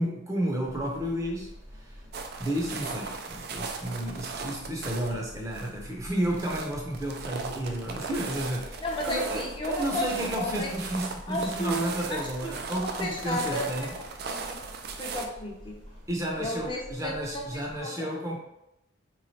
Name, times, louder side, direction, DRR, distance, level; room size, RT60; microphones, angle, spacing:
voice 1, 0.0-1.5 1.8-2.0 2.4-13.9 16.1-18.4, right 1 dB, 15° right, -1 dB, 0.6 m, -32 dB
sound 1, 0.6-17.8, equal, 65° right, 1.0 m, -47 dB
sound 2, 2.1-15.3, right 4 dB, 50° right, 0.3 m, -38 dB
voice 2, 8.8-10.1 10.4-10.7 11.3-12.5 12.8-13.9 14.2-14.6 15.0-15.7 16.4-18.1, left 1 dB, 25° left, -1 dB, 0.6 m, -33 dB
3.7 x 3.1 x 2.8 m, 0.85 s
head